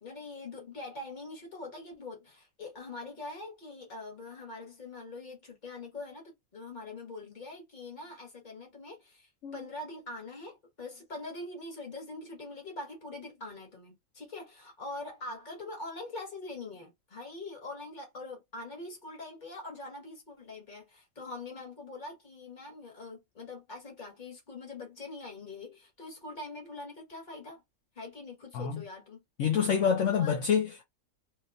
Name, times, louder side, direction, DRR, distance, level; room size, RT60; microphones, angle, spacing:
voice 1, 0.0-27.6 27.9-29.2 30.1-30.4, left 2 dB, 35° left, 1.6 m, -43 dB
voice 2, 29.4-30.8, left 7 dB, 65° left, 1.0 m, -27 dB
3.1 x 3.0 x 2.5 m
omnidirectional pair, 1.5 m